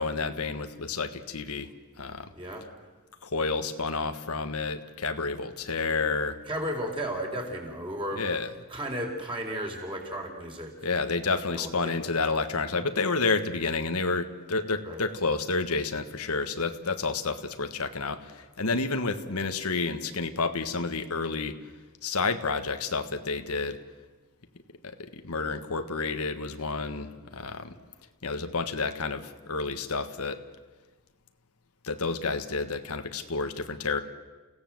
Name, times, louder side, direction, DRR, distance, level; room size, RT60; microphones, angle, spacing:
voice 1, 0.0-1.7 2.0-2.3 3.2-6.4 8.2-8.5 10.8-21.6 22.0-23.8 24.8-27.7 28.2-30.4 31.8-34.0, left 4 dB, 90° left, 8 dB, 1.5 m, -30 dB
voice 2, 6.5-8.2 8.7-10.7 11.5-11.9 14.8-15.0, equal, 25° right, 0 dB, 4.5 m, -34 dB
29.5 x 17.0 x 7.8 m, 1.3 s
head